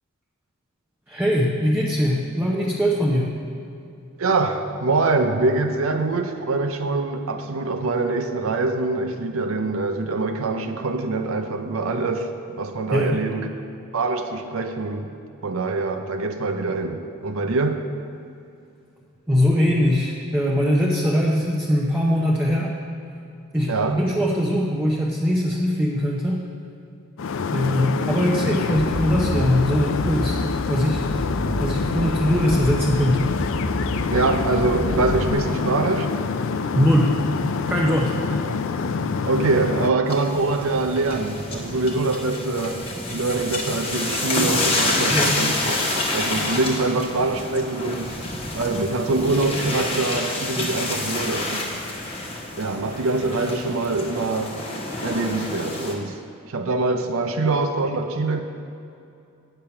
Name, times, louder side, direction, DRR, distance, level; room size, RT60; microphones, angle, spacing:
voice 1, 1.1-3.3 12.9-13.2 19.3-22.7 23.5-26.4 27.5-30.4 30.7-31.1 31.6-33.4 36.7-37.2 37.7-38.2 45.1-45.4, equal, 10° right, -4 dB, 0.7 m, -21 dB
voice 2, 4.2-13.5 13.9-15.1 15.4-17.9 23.7-24.0 34.1-36.1 38.3-38.6 39.0-42.8 43.1-48.2 48.5-51.8 52.6-54.6 55.0-56.2 56.5-58.4, right 3 dB, 65° right, 6 dB, 0.6 m, -24 dB
sound 1, 27.2-39.9, left 5 dB, 65° left, 0.4 m, -26 dB
sound 2, 28.7-35.3, equal, 5° left, 1.5 m, -30 dB
sound 3, 40.1-55.9, left 2 dB, 25° left, 1.2 m, -28 dB
9.0 x 6.7 x 5.8 m, 2.6 s
head